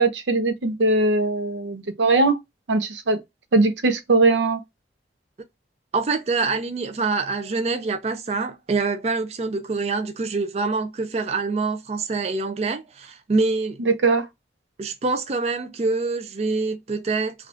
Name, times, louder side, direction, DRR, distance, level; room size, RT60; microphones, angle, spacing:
voice 1, 0.0-2.4 2.7-3.2 3.5-4.6 13.8-14.3, right 3 dB, 85° right, 0.6 m, -20 dB
voice 2, 5.9-13.8 14.8-17.3, right 3 dB, 35° right, 0.4 m, -25 dB
3.4 x 2.3 x 2.5 m
head